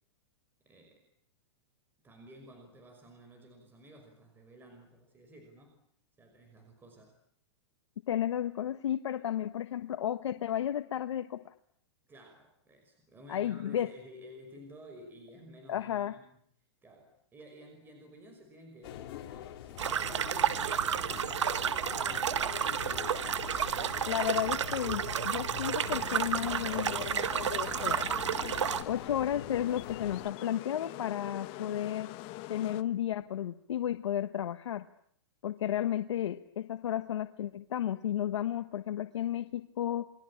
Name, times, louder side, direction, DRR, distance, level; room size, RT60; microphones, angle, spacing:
voice 1, 0.6-1.1 2.0-5.8 6.2-7.2 12.1-16.4 16.8-21.3 21.8-22.8 28.7-29.1 35.6-35.8, equal, 15° right, 4 dB, 5.7 m, -54 dB
voice 2, 8.1-11.5 13.3-13.9 15.7-16.1 24.1-28.1 28.9-32.1 32.5-34.8 35.4-40.1, left 11 dB, 80° left, 9 dB, 1.3 m, -33 dB
sound 1, 18.8-30.3, left 11 dB, 55° left, 3.3 m, -44 dB
Podgradje brook, 19.8-28.8, right 8 dB, 85° right, 1.7 m, -31 dB
sound 2, 25.8-32.8, left 18 dB, 40° left, 1.2 m, -44 dB
28.0 x 21.5 x 8.7 m, 0.67 s
hypercardioid pair, 140°, 15 cm